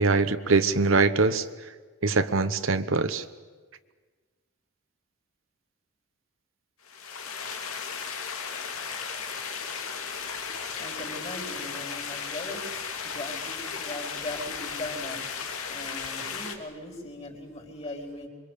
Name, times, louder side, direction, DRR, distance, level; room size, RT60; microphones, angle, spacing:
voice 1, 0.0-1.4 2.0-3.2, right 3 dB, 70° right, 10 dB, 1.1 m, -23 dB
sound 1, 6.9-16.6, left 6 dB, 90° left, 2.7 m, -35 dB
voice 2, 10.2-18.3, left 1 dB, 30° left, 2 dB, 4.8 m, -40 dB
27.5 x 23.5 x 8.4 m, 1.4 s
head